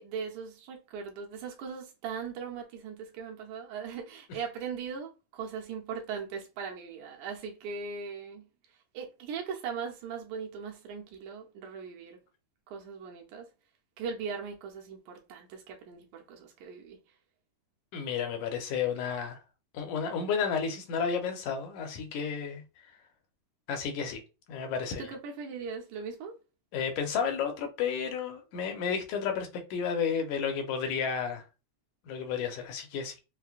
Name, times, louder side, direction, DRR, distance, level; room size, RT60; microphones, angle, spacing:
voice 1, 0.0-8.5 8.9-12.2 12.7-13.5 14.0-17.0 25.0-26.4, right 6 dB, 75° right, 2.0 m, -39 dB
voice 2, 17.9-19.4 19.7-22.6 23.7-24.2 24.5-25.1 26.7-31.4 32.1-33.1, left 6 dB, 75° left, 2.1 m, -32 dB
5.6 x 2.1 x 2.4 m
omnidirectional pair, 3.6 m